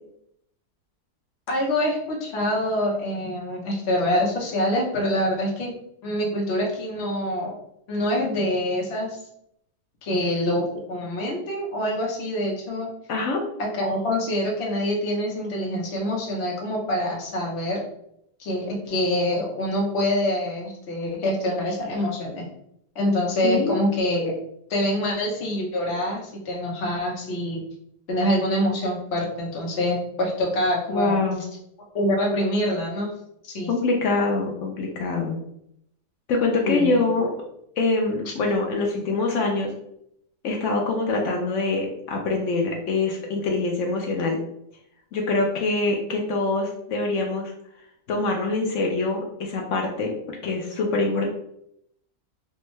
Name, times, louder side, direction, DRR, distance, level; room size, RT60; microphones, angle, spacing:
voice 1, 1.5-5.7 6.0-7.6 7.9-9.2 10.0-12.9 13.6-17.8 18.4-22.4 22.9-24.3 24.7-27.6 28.1-31.2 31.9-33.1 33.4-33.7 36.6-37.0, left 1 dB, 50° left, -1 dB, 0.9 m, -25 dB
voice 2, 13.1-13.4 23.4-23.7 30.9-31.4 33.7-35.4 36.3-37.4 37.8-39.7 40.4-44.4 45.1-47.5 48.1-51.3, left 3 dB, 75° left, 1 dB, 0.7 m, -24 dB
3.5 x 2.2 x 3.0 m, 0.74 s
omnidirectional pair, 1.8 m